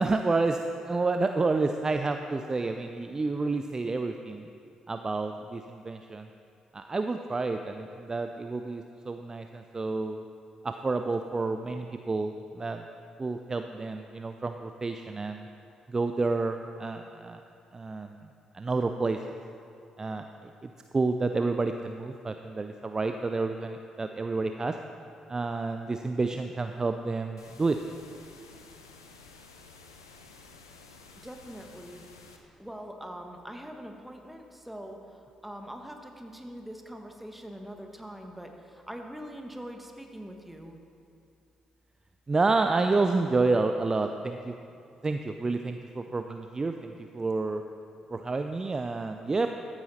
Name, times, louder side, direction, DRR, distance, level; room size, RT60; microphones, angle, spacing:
voice 1, 0.0-4.5 4.9-6.3 6.7-10.2 10.6-12.9 13.2-15.5 15.9-17.4 17.7-18.3 18.5-19.4 20.0-20.3 20.6-24.8 25.3-27.8 42.3-44.5 45.0-47.6 48.1-49.5, right 3 dB, 30° right, 6 dB, 0.5 m, -29 dB
sound 1, 27.4-32.4, left 4 dB, 85° left, 0.6 m, -52 dB
voice 2, 31.2-32.0 32.6-40.7, equal, 5° right, 3 dB, 1.5 m, -43 dB
14.0 x 9.0 x 4.3 m, 2.6 s
figure-of-eight pair, 40°, 2 cm